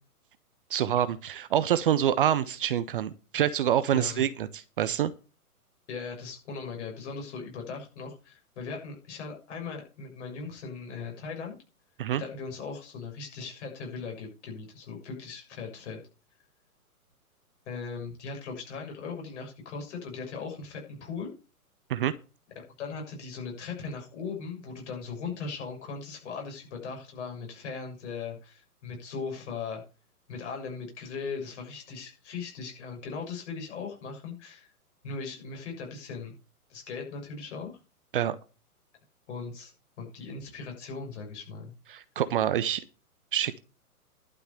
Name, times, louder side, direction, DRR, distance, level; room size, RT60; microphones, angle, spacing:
voice 1, 0.7-5.1 12.0-12.2 21.9-22.1 38.1-38.4 41.9-42.8 43.3-43.6, right 10 dB, 35° right, 14 dB, 0.7 m, -26 dB
voice 2, 3.9-4.3 5.9-11.6 12.2-16.0 17.7-21.3 22.6-29.8 30.3-34.7 35.0-36.3 36.7-37.7 39.3-39.7 40.0-41.7, left 5 dB, 50° left, 2 dB, 7.0 m, -38 dB
11.5 x 6.6 x 6.9 m, 0.34 s
figure-of-eight pair, 125°, 45 cm